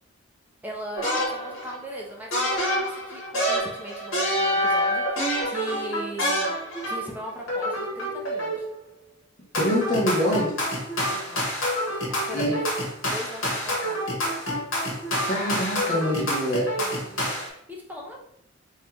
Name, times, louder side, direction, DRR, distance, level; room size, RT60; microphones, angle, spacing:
voice 1, 0.6-6.5 6.8-8.7 11.1-11.5 12.1-12.7 13.0-14.0 16.8-18.2, equal, 10° right, -2 dB, 0.7 m, -38 dB
sound 1, 1.0-1.8 2.3-7.2 7.5-8.7 9.5-17.5, equal, 85° left, 1.5 m, -27 dB
voice 2, 9.6-10.6 12.3-12.6 15.3-16.7, equal, 45° left, -2 dB, 1.2 m, -25 dB
3.6 x 3.1 x 3.0 m, 0.70 s
head